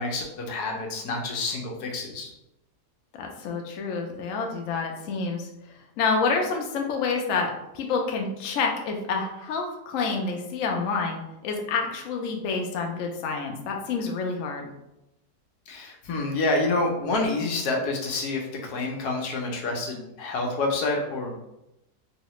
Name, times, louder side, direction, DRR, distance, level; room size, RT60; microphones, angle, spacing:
voice 1, 0.0-2.3 15.7-21.4, left 2 dB, 85° left, 1 dB, 1.3 m, -28 dB
voice 2, 3.2-5.5 6.0-14.7, left 4 dB, 70° left, 2 dB, 0.9 m, -28 dB
3.2 x 2.8 x 3.0 m, 0.87 s
omnidirectional pair, 1.6 m